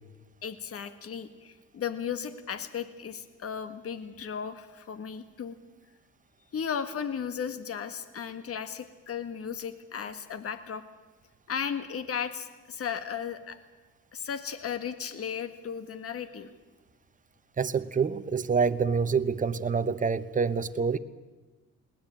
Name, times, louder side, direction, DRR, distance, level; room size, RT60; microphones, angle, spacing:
voice 1, 0.4-5.6 6.5-10.8 11.5-13.6 14.1-16.5, left 7 dB, 50° left, 11 dB, 1.7 m, -35 dB
voice 2, 17.6-21.0, right 5 dB, 25° right, 11 dB, 1.0 m, -27 dB
21.0 x 18.0 x 8.9 m, 1.2 s
cardioid pair, 105°, 30 cm